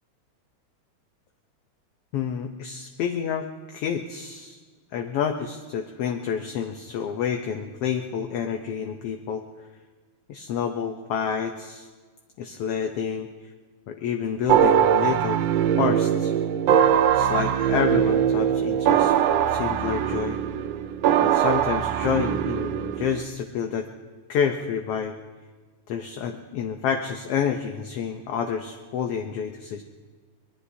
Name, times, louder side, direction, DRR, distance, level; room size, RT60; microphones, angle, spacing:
voice 1, 2.1-4.6 4.9-9.4 10.3-11.9 12.4-13.3 13.9-15.4 15.8-16.3 17.1-19.1 19.5-20.4 21.2-23.9 24.3-25.2 25.9-29.8, left 7 dB, 70° left, 4 dB, 1.6 m, -28 dB
sound 1, 14.5-23.2, right 9 dB, 75° right, 1.6 m, -21 dB
24.5 x 20.5 x 2.8 m, 1.4 s
omnidirectional pair, 3.3 m